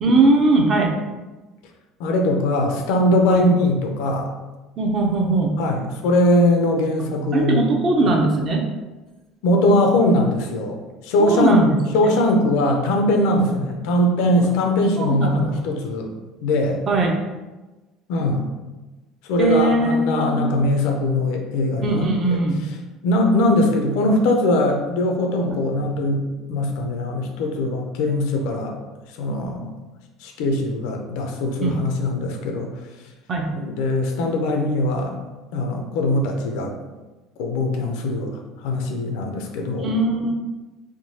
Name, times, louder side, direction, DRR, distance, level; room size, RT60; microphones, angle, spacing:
voice 1, 0.0-1.0 3.3-3.5 4.8-5.6 7.3-8.6 11.2-11.7 13.4-13.5 15.0-15.6 16.9-17.1 19.4-20.5 21.8-22.6 31.6-31.8 33.3-33.5 39.8-40.3, right 2 dB, 35° right, 1 dB, 0.6 m, -20 dB
voice 2, 2.0-4.3 5.6-7.6 9.4-11.6 11.9-16.1 16.4-16.8 18.1-18.5 19.3-22.4 23.0-26.2 26.5-28.8 29.2-29.7 30.2-32.7 33.5-35.2 35.5-36.7 37.4-39.9, left 1 dB, 80° left, 3 dB, 0.6 m, -21 dB
3.7 x 2.7 x 2.7 m, 1.1 s
cardioid pair, 140°, 0 cm